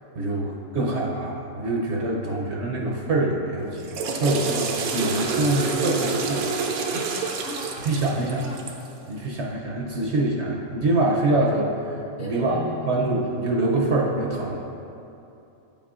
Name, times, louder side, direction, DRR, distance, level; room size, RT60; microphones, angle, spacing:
voice 1, 0.1-6.5 7.8-8.4 9.1-12.5 12.9-14.6, right 2 dB, 60° right, -2 dB, 0.8 m, -25 dB
Water / Toilet flush, 3.7-8.9, right 4 dB, 85° right, 1.1 m, -28 dB
voice 2, 7.3-7.7 8.2-8.6 12.2-12.9, left 1 dB, 45° left, -6 dB, 0.8 m, -36 dB
8.8 x 5.5 x 2.4 m, 2.8 s
omnidirectional pair, 1.5 m